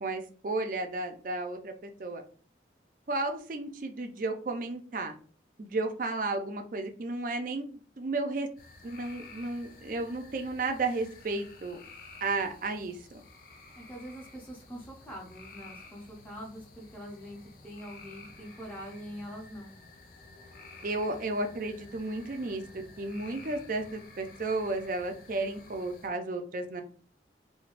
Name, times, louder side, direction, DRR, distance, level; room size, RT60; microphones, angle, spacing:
voice 1, 0.0-2.2 3.1-5.1 5.6-8.5 8.8-11.8 12.2-13.2 20.8-22.6 23.0-26.8, right 2 dB, 45° right, 5 dB, 0.4 m, -33 dB
sound 1, 8.6-26.1, left 3 dB, 50° left, 0.4 m, -52 dB
voice 2, 13.7-19.8, equal, 10° left, -3 dB, 0.6 m, -44 dB
3.2 x 2.2 x 2.5 m, 0.42 s
head